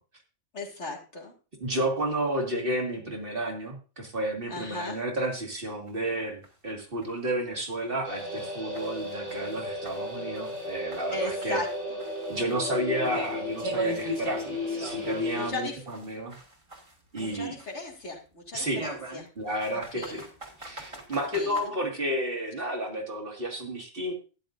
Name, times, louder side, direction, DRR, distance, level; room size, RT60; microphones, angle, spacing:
voice 1, 0.5-1.3 4.5-5.0 11.1-11.7 15.4-15.8 17.2-19.3 19.9-20.3 21.3-21.6, left 2 dB, 70° left, -1 dB, 2.5 m, -36 dB
voice 2, 1.6-11.6 12.3-16.4 17.1-17.6 18.5-18.8 19.4-20.2 20.6-24.1, right 1 dB, 50° right, 1 dB, 2.2 m, -31 dB
sound 1, 4.8-4.9 5.3-5.4 5.9-6.0 6.4-6.5 7.0-7.1 7.6-7.7 8.2-10.7 10.9-15.6 15.9-17.9 18.8-21.7, right 3 dB, 25° right, 1.8 m, -41 dB
sound 2, 8.0-15.5, left 2 dB, 80° right, 5.7 m, -34 dB
12.5 x 10.0 x 2.6 m, 0.34 s
omnidirectional pair, 1.2 m